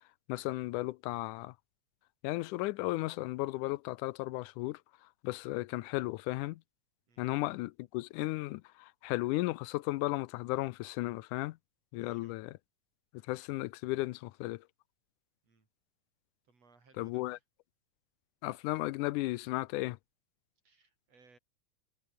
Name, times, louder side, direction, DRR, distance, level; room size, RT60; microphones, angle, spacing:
voice 1, 0.3-1.5 2.2-4.8 5.2-6.6 7.2-11.6 11.9-12.5 13.3-14.6 17.0-17.4 18.4-20.0, left 19 dB, 90° left, 2.2 m, -35 dB
voice 2, 12.0-12.4 15.4-15.7 16.5-17.4 20.6-21.4, right 4 dB, 55° right, 6.3 m, -64 dB
omnidirectional pair, 3.5 m